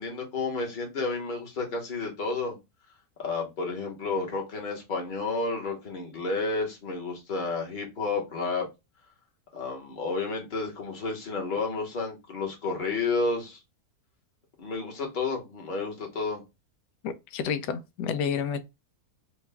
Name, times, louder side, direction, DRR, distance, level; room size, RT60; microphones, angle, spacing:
voice 1, 0.0-2.6 3.2-8.7 9.5-13.6 14.6-16.4, left 3 dB, 35° left, 1.2 m, -31 dB
voice 2, 17.0-18.6, left 7 dB, 90° left, 1.2 m, -30 dB
4.5 x 2.4 x 3.3 m
omnidirectional pair, 1.7 m